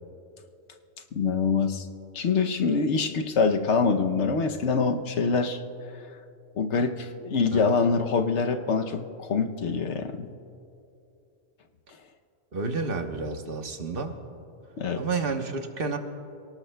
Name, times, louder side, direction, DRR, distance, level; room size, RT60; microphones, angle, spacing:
voice 1, 1.1-1.8 2.1-5.6 6.6-10.3 14.8-15.0, left 5 dB, 75° left, 6 dB, 1.1 m, -25 dB
voice 2, 12.5-14.1 15.0-16.0, right 4 dB, 50° right, 5 dB, 1.2 m, -30 dB
28.0 x 17.5 x 2.3 m, 2.8 s
omnidirectional pair, 1.2 m